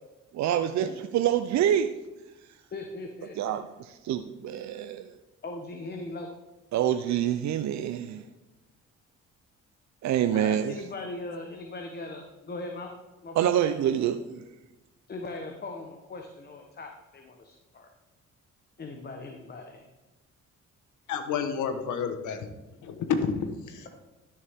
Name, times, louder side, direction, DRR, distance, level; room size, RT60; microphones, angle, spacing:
voice 1, 0.3-0.9 1.1-1.9 3.4-5.1 6.7-8.2 10.0-10.7 13.4-14.4, right 10 dB, 65° right, 8 dB, 0.6 m, -26 dB
voice 2, 2.7-3.6 5.4-6.3 10.3-12.9 13.2-13.5 15.1-17.9 18.8-19.8, left 2 dB, 35° left, 3 dB, 1.1 m, -39 dB
voice 3, 21.1-22.5 22.8-23.9, left 6 dB, 80° left, 8 dB, 1.2 m, -30 dB
12.0 x 7.0 x 3.6 m, 1.1 s
cardioid pair, 90°, 30 cm